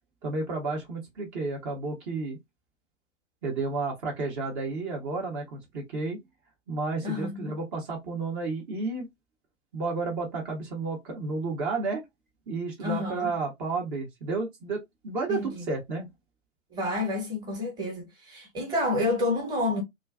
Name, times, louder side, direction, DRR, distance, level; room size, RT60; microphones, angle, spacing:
voice 1, 0.2-2.4 3.4-6.2 6.7-9.1 9.7-12.0 12.5-16.1, right 3 dB, 35° right, 0.8 m, -31 dB
voice 2, 7.0-7.5 12.8-13.3 15.3-15.7 16.7-19.8, left 2 dB, 10° right, 0.9 m, -29 dB
2.4 x 2.3 x 2.3 m
figure-of-eight pair, 115°, 40 cm